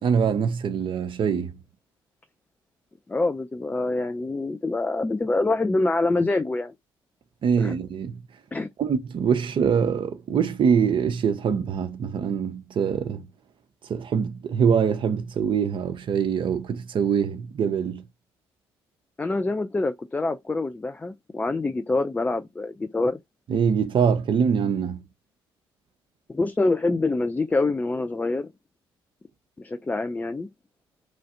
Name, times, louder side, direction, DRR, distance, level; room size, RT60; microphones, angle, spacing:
voice 1, 0.0-1.5 7.4-8.2 8.8-13.3 13.8-18.0 23.5-25.0, right 7 dB, 45° right, 0.5 m, -24 dB
voice 2, 3.1-6.7 7.6-7.7 8.5-8.7 19.2-23.2 26.3-28.5 29.6-30.5, left 2 dB, 15° left, 0.3 m, -25 dB
3.1 x 2.5 x 2.6 m
figure-of-eight pair, 45°, 12 cm